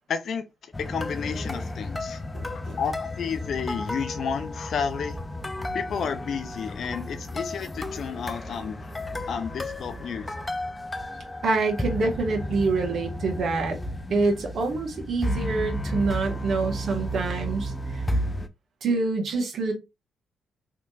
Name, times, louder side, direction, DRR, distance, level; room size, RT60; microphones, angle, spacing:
voice 1, 0.1-2.2 2.5-5.2 5.7-8.9 9.3-10.3, left 6 dB, 65° left, 0.5 m, -31 dB
sound 1, 0.7-18.5, left 1 dB, 20° left, 0.5 m, -33 dB
voice 2, 2.3-2.8 11.4-13.8 14.1-18.0 18.8-19.7, right 3 dB, 65° right, 1.2 m, -26 dB
3.3 x 2.9 x 2.3 m
supercardioid pair, 60°, 0 cm